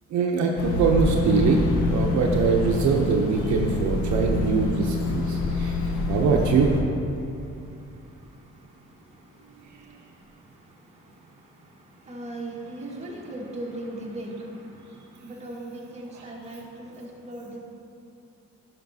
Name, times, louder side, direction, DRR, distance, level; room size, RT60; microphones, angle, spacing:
voice 1, 0.1-6.7 16.1-16.2, right 5 dB, 70° right, 1 dB, 0.7 m, -23 dB
sound 1, 0.6-6.8, left 2 dB, 70° left, 1.0 m, -26 dB
voice 2, 5.2-6.2 7.3-8.7 9.1-9.3 9.6-10.3 10.9-11.3 12.0-17.6, right 1 dB, 20° right, -4 dB, 1.5 m, -40 dB
11.5 x 5.9 x 2.7 m, 2.7 s
cardioid pair, 115°, 30 cm